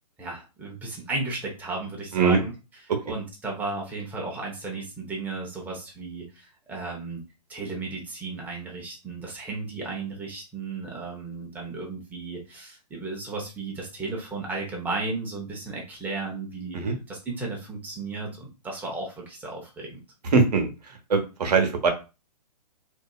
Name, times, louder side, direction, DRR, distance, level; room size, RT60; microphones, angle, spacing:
voice 1, 0.2-2.5 3.1-7.2 7.5-20.0, right 3 dB, 10° right, -1 dB, 0.6 m, -34 dB
voice 2, 20.3-20.7 21.1-21.9, right 4 dB, 70° right, 4 dB, 0.9 m, -21 dB
2.7 x 2.4 x 2.3 m, 0.30 s
hypercardioid pair, 140°, 21 cm